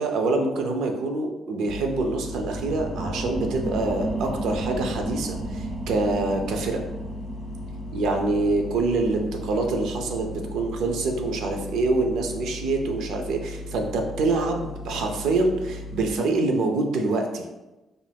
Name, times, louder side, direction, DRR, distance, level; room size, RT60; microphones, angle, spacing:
voice 1, 0.0-6.8 7.9-17.4, right 3 dB, 80° right, 3 dB, 0.4 m, -25 dB
sound 1, 1.7-16.1, left 2 dB, 65° left, 0.4 m, -38 dB
sound 2, 1.9-13.1 13.5-13.6, right 2 dB, 20° right, 0.4 m, -35 dB
2.5 x 2.3 x 3.3 m, 1.0 s
cardioid pair, 90°, 0 cm